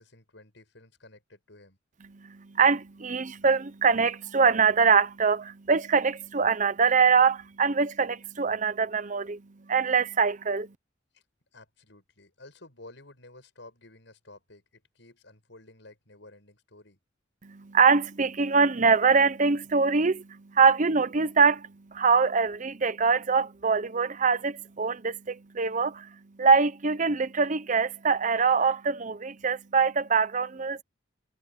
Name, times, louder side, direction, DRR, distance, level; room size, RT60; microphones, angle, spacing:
voice 1, 0.0-1.8 11.1-11.2 11.5-17.0, left 2 dB, 65° left, 7.7 m, -52 dB
voice 2, 2.1-9.4 9.7-10.7 17.4-30.8, right 5 dB, 40° right, 0.7 m, -24 dB
head